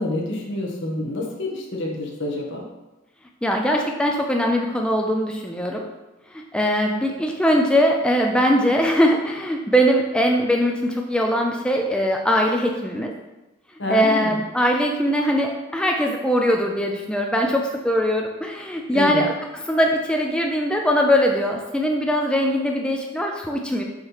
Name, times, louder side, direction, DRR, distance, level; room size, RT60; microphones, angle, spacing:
voice 1, 0.0-2.7 13.8-14.4 18.9-19.2, left 2 dB, 60° left, -1 dB, 1.3 m, -27 dB
voice 2, 3.4-5.8 6.3-13.1 13.9-23.8, equal, 5° left, 1 dB, 0.4 m, -21 dB
6.5 x 3.1 x 5.6 m, 1.1 s
head